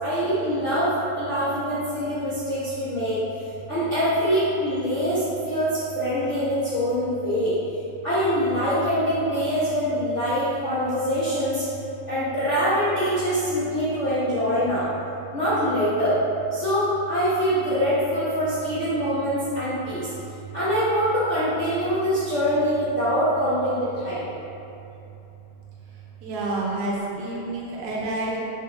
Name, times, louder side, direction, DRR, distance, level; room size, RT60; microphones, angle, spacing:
voice 1, 0.0-3.2 3.7-7.5 8.0-11.6 12.1-14.9 15.3-16.1 16.5-20.1 20.5-24.3, equal, 85° left, -12 dB, 0.6 m, -24 dB
voice 2, 26.2-28.4, right 2 dB, 85° right, -4 dB, 2.5 m, -28 dB
6.8 x 6.0 x 3.0 m, 2.8 s
omnidirectional pair, 3.4 m